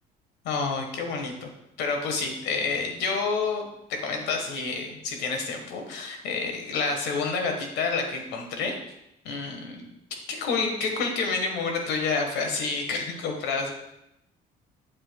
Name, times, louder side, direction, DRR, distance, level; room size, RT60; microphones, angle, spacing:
voice 1, 0.4-1.5 1.8-8.8 9.2-13.7, left 4 dB, 85° left, 3 dB, 1.4 m, -29 dB
7.8 x 7.2 x 2.3 m, 0.83 s
cardioid pair, 110°, 17 cm